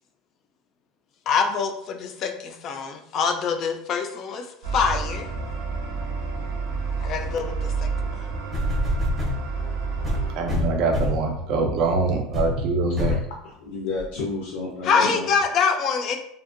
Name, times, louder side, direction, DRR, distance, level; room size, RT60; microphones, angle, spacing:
voice 1, 1.3-4.4 4.7-5.3 7.0-7.5 14.9-16.2, left 5 dB, 40° left, 5 dB, 0.3 m, -24 dB
sound 1, 4.6-10.4, right 4 dB, 85° right, 0.6 m, -29 dB
sound 2, 8.0-8.1 8.5-9.4 10.0-11.3 11.8-12.0 12.3-12.6 13.0-13.3 14.0-14.1, left 1 dB, 10° right, 0.7 m, -26 dB
voice 2, 10.3-13.2, right 3 dB, 50° right, 2 dB, 0.3 m, -23 dB
voice 3, 13.0-15.3, left 3 dB, 85° left, -3 dB, 0.5 m, -31 dB
2.6 x 2.1 x 2.5 m, 0.71 s
cardioid pair, 155°, 0 cm